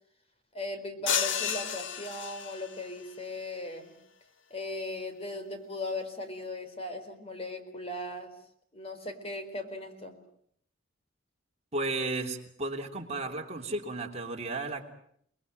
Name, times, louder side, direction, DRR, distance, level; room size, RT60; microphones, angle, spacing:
voice 1, 0.5-3.9 4.5-8.3 8.7-10.1, left 2 dB, 30° left, 8 dB, 4.3 m, -38 dB
sound 1, 1.1-2.9, left 8 dB, 70° left, 1.4 m, -31 dB
voice 2, 11.7-14.8, right 2 dB, 35° right, 2 dB, 3.3 m, -34 dB
30.0 x 21.5 x 7.9 m, 0.67 s
head